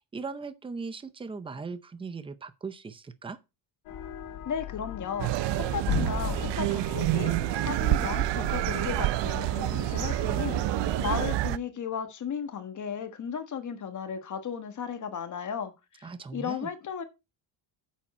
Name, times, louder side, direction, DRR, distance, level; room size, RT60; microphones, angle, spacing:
voice 1, 0.0-3.4 16.0-16.7, right 4 dB, 10° right, 0.5 m, -39 dB
sound 1, 3.9-11.2, left 10 dB, 90° left, 2.0 m, -38 dB
voice 2, 4.4-17.0, left 7 dB, 35° left, 1.4 m, -35 dB
sound 2, 5.2-11.6, right 16 dB, 60° right, 0.5 m, -28 dB
8.9 x 7.5 x 4.3 m
cardioid pair, 155°, 48 cm